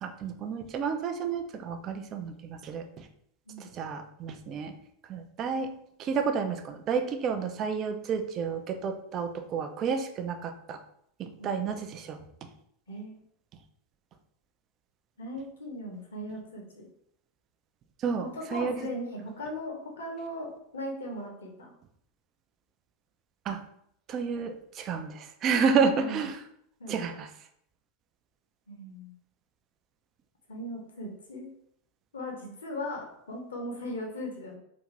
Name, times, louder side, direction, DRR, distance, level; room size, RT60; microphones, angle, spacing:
voice 1, 0.0-2.8 3.8-4.7 5.1-5.7 6.0-10.8 11.2-12.2 18.0-18.2 18.5-18.7 23.5-23.6 24.1-25.1 25.4-26.3 26.9-27.3, right 6 dB, 40° right, 7 dB, 0.4 m, -30 dB
voice 2, 15.2-16.9 18.2-21.7 25.9-26.2 26.8-27.2 28.7-29.1 30.5-31.5 32.1-34.6, left 1 dB, 75° left, 0 dB, 0.7 m, -38 dB
2.5 x 2.5 x 3.0 m, 0.71 s
figure-of-eight pair, 85°, 0 cm